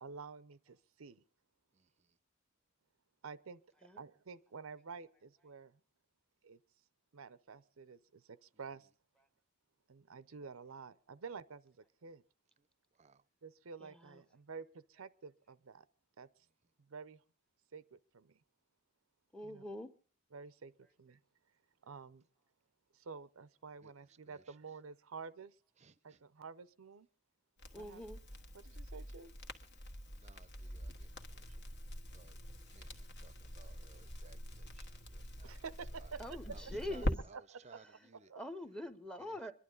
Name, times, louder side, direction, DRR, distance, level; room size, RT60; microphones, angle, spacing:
voice 1, 0.0-1.2 3.2-5.8 6.4-6.6 7.1-8.9 9.9-12.2 13.4-15.9 16.2-16.3 16.8-17.2 17.7-18.4 19.4-19.6 20.3-20.7 21.0-21.2 21.8-22.3 22.9-25.6 26.0-27.1 27.7-28.0 28.5-29.3 35.4-36.6 37.3-38.4, right 5 dB, 90° right, 0.7 m, -50 dB
voice 2, 13.8-14.2 19.3-19.9 27.7-28.2 36.2-37.2 37.7-38.1 38.3-39.5, left 1 dB, 5° left, 0.8 m, -44 dB
Crackle, 27.6-37.1, equal, 55° left, 1.6 m, -44 dB
voice 3, 30.2-31.1 31.3-31.5 32.1-32.3 32.7-34.8 35.1-35.5 36.5-36.6 36.9-37.4 37.6-38.3 39.2-39.4, right 4 dB, 35° right, 0.6 m, -61 dB
25.5 x 11.0 x 3.9 m
head